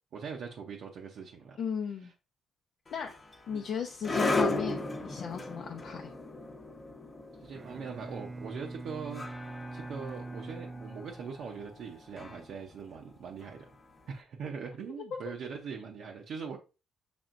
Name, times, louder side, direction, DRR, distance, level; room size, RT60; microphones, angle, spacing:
voice 1, 0.1-1.6 3.5-3.6 4.1-4.3 7.4-9.2 9.7-13.7 14.1-16.6, right 6 dB, 70° right, 0.7 m, -41 dB
voice 2, 1.6-2.1 2.9-3.2 3.5-6.1, left 7 dB, 65° left, 0.6 m, -36 dB
sound 1, 2.9-14.0, left 2 dB, 30° left, 0.9 m, -37 dB
Bowed string instrument, 7.5-11.8, right 2 dB, 25° right, 0.4 m, -44 dB
6.0 x 3.4 x 2.5 m
cardioid pair, 90°, 0 cm